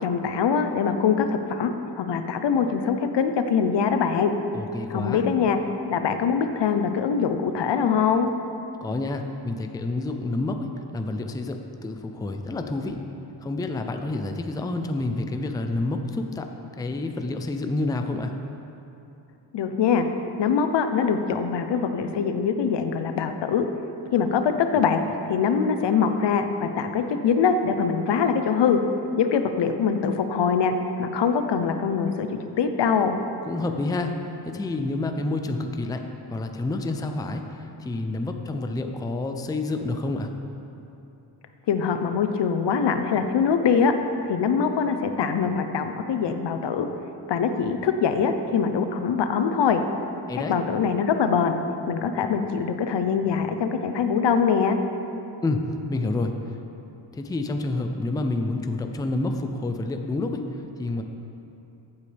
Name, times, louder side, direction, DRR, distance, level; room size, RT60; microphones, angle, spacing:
voice 1, 0.0-4.3 4.9-5.6 5.9-8.3 19.5-20.1 20.4-23.7 24.1-25.0 25.3-28.8 29.2-30.7 31.0-32.3 32.6-33.2 41.7-43.9 44.3-46.9 47.3-49.8 50.5-51.6 51.9-54.8, left 6 dB, 75° left, 7 dB, 0.8 m, -23 dB
voice 2, 4.5-5.2 8.8-13.0 13.4-18.3 33.5-40.3 50.3-50.5 55.4-55.6 55.9-56.6 57.1-61.0, left 2 dB, 10° left, 5 dB, 0.4 m, -29 dB
14.5 x 8.3 x 3.4 m, 2.9 s
wide cardioid pair, 145°, 43 cm